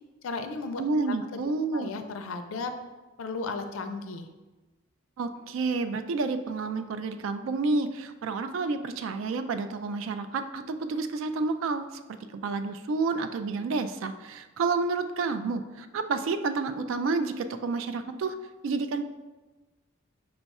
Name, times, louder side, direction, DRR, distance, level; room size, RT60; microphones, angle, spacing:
voice 1, 0.2-1.4 1.7-2.7 3.2-4.3, left 3 dB, 80° left, 7 dB, 0.4 m, -35 dB
voice 2, 0.8-1.9 5.2-11.9 12.3-18.3 18.6-19.0, right 3 dB, 70° right, 9 dB, 0.3 m, -29 dB
5.0 x 2.3 x 4.1 m, 1.2 s
head